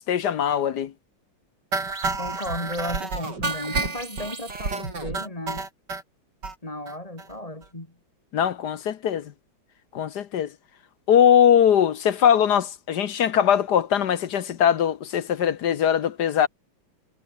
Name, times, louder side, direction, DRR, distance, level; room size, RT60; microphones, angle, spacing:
voice 1, 0.1-0.9 8.3-9.3 9.9-10.5 11.1-16.5, left 9 dB, 60° left, 1.4 m, -21 dB
sound 1, 1.7-6.0 6.4-6.5 6.9-7.0 7.2-7.3 7.6-7.7, right 4 dB, 55° right, 4.5 m, -30 dB
voice 2, 2.2-5.7 6.6-7.9, left 1 dB, 15° left, 3.2 m, -34 dB
omnidirectional pair, 2.3 m